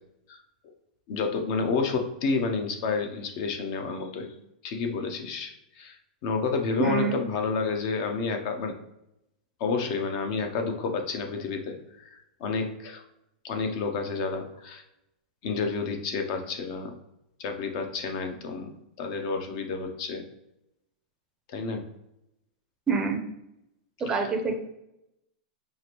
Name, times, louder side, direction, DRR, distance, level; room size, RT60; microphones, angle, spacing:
voice 1, 1.1-4.3 4.6-6.0 6.2-8.8 9.6-11.8 12.1-13.0 13.4-14.8 15.4-16.9 17.4-18.7 19.0-20.2 21.5-21.8 24.2-24.3, left 4 dB, 45° left, 5 dB, 0.7 m, -30 dB
voice 2, 6.8-7.2 22.9-23.2 24.0-24.6, right 5 dB, 15° right, 3 dB, 0.5 m, -26 dB
4.8 x 2.5 x 3.0 m, 0.85 s
supercardioid pair, 150°, 5 cm